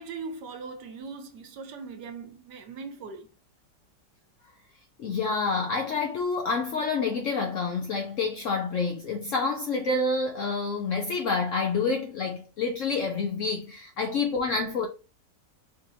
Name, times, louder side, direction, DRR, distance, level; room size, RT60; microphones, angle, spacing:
voice 1, 0.0-3.3, right 4 dB, 75° right, 1.3 m, -40 dB
voice 2, 5.0-14.9, left 4 dB, 65° left, 0.8 m, -28 dB
5.1 x 2.7 x 2.7 m
omnidirectional pair, 1.9 m